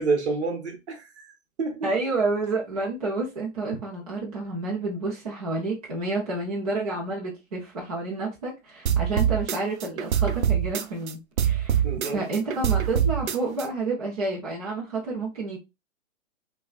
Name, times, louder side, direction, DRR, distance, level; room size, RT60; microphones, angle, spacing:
voice 1, 0.0-1.9 11.8-12.2, right 4 dB, 55° right, 1.0 m, -29 dB
voice 2, 1.8-15.6, right 3 dB, 30° right, 0.7 m, -29 dB
sound 1, 8.9-11.1 11.4-13.7, right 9 dB, 80° right, 0.6 m, -24 dB
5.5 x 2.3 x 2.4 m
hypercardioid pair, 180°, 40 cm